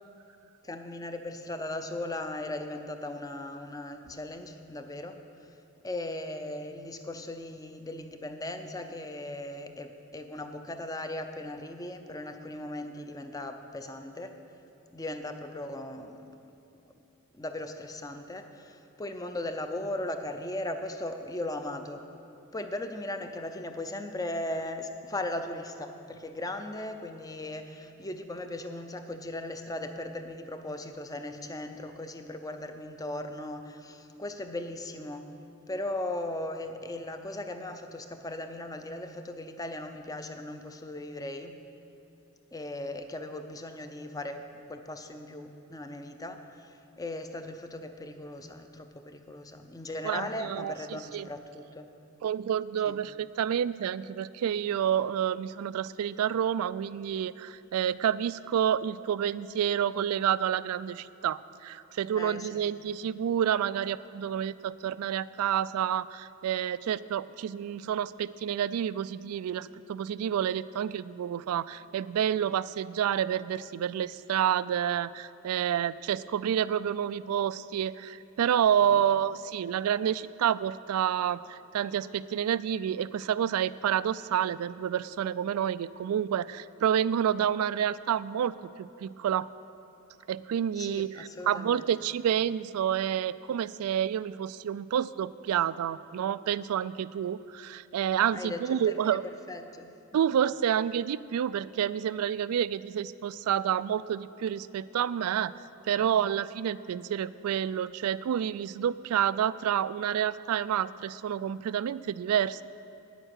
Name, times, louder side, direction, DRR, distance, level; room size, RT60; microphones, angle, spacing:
voice 1, 0.6-5.5 5.8-14.4 14.9-16.4 16.8-16.9 17.3-22.0 22.5-35.3 35.7-41.6 42.5-51.9 52.8-53.0 62.1-62.6 78.8-79.1 90.8-91.9 98.3-99.9, left 1 dB, 15° left, 7 dB, 0.5 m, -38 dB
voice 2, 50.0-51.3 52.2-89.5 90.3-99.2 100.1-105.5 105.9-112.6, right 9 dB, 90° right, 17 dB, 0.3 m, -29 dB
9.8 x 9.1 x 6.5 m, 2.7 s
head